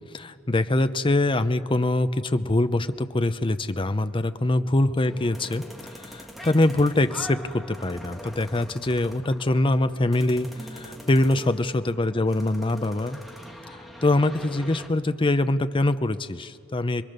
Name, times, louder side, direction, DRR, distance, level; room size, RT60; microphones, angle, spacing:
voice 1, 0.1-5.6 5.9-13.2 13.7-17.0, left 2 dB, 25° left, 11 dB, 0.7 m, -24 dB
sound 1, 5.0-14.9, equal, ahead, 1.5 m, -42 dB
27.5 x 22.0 x 6.7 m, 2.2 s
head